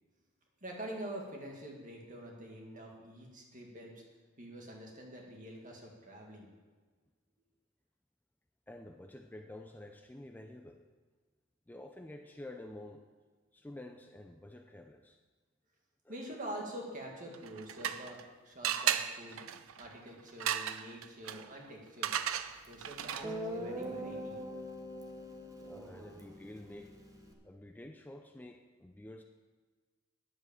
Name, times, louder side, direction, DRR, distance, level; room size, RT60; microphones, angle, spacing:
voice 1, 0.6-3.9 4.4-6.5 16.1-18.2 18.4-19.4 19.8-22.2 22.7-24.3, right 1 dB, 40° right, 0 dB, 2.0 m, -46 dB
voice 2, 8.7-10.8 11.7-13.1 13.5-15.2 16.0-16.4 19.3-19.4 25.6-27.0 27.4-29.2, left 1 dB, 10° left, 4 dB, 0.4 m, -49 dB
sound 1, 17.3-18.3 18.6-23.5, right 10 dB, 75° right, 0.5 m, -36 dB
Guitar, 22.6-22.7 23.2-27.3, equal, 15° right, 1.0 m, -42 dB
9.9 x 8.1 x 6.8 m, 1.4 s
head